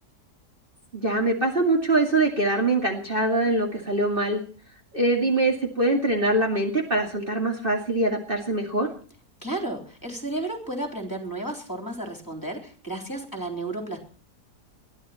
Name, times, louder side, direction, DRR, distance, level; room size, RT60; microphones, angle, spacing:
voice 1, 0.9-4.4 4.9-8.9, right 2 dB, 35° right, 0 dB, 2.5 m, -23 dB
voice 2, 9.4-14.0, right 2 dB, 10° left, 3 dB, 3.7 m, -32 dB
21.5 x 14.0 x 4.4 m, 0.43 s
omnidirectional pair, 1.7 m